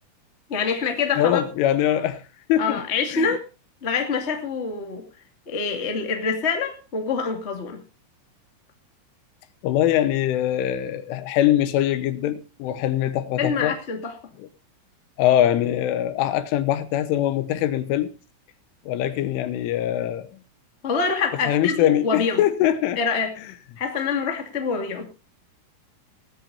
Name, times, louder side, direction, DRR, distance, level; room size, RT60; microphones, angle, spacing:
voice 1, 0.5-1.4 2.6-3.4 3.8-5.0 5.4-7.8 13.4-14.1 20.8-22.4 22.9-23.3 23.8-25.1, left 5 dB, 35° left, 1.0 m, -25 dB
voice 2, 1.2-2.2 2.5-2.8 3.1-3.3 9.6-13.8 15.2-18.1 18.9-20.3 21.5-23.0, left 12 dB, 75° left, 3.4 m, -22 dB
19.5 x 14.0 x 2.7 m
omnidirectional pair, 5.9 m